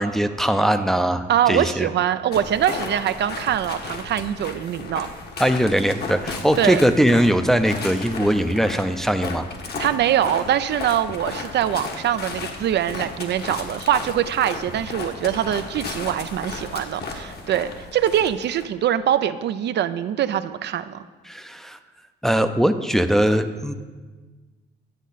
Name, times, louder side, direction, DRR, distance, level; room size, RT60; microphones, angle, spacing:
voice 1, 0.0-1.9 5.4-9.5 21.3-21.8 22.2-23.7, equal, ahead, 8 dB, 0.5 m, -20 dB
voice 2, 1.3-5.1 6.6-6.8 9.8-21.0, right 10 dB, 60° right, 12 dB, 0.4 m, -23 dB
sound 1, 2.3-18.7, left 3 dB, 55° left, 1.2 m, -34 dB
10.0 x 7.2 x 4.0 m, 1.3 s
cardioid pair, 90°, 20 cm